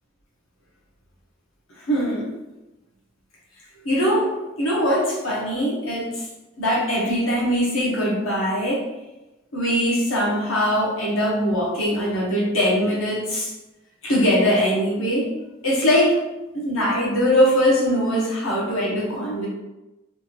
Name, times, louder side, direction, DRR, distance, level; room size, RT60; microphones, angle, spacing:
voice 1, 1.8-2.3 3.8-4.3 4.6-6.3 6.6-8.8 9.5-13.5 14.0-15.3 15.6-16.2 16.5-19.5, equal, 85° left, -4 dB, 1.1 m, -21 dB
3.4 x 2.5 x 2.9 m, 1.0 s
head